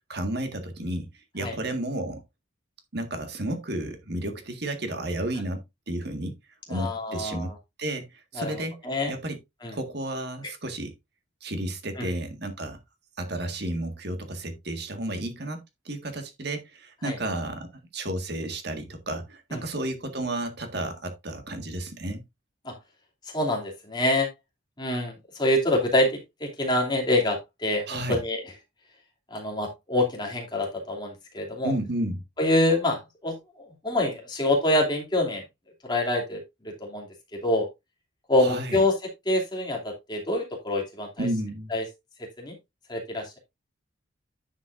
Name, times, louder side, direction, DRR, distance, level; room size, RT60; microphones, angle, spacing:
voice 1, 0.1-2.2 2.9-6.4 6.7-7.5 7.8-8.8 9.1-9.4 9.7-10.9 11.4-12.8 13.2-15.6 15.9-17.7 17.9-22.2 27.9-28.2 31.6-32.2 38.4-38.8 41.2-41.7, right 1 dB, 55° right, 1.7 m, -32 dB
voice 2, 6.7-7.5 8.4-9.1 9.6-9.7 12.0-12.1 17.0-17.2 19.5-19.6 22.6-22.7 23.3-24.3 24.8-28.4 29.3-31.7 32.4-33.3 33.8-35.4 35.8-37.1 37.4-37.7 38.3-38.9 39.3-41.3 41.7-41.8 42.2-42.5 42.9-43.4, left 1 dB, 20° left, 2.7 m, -26 dB
9.9 x 7.4 x 2.6 m
head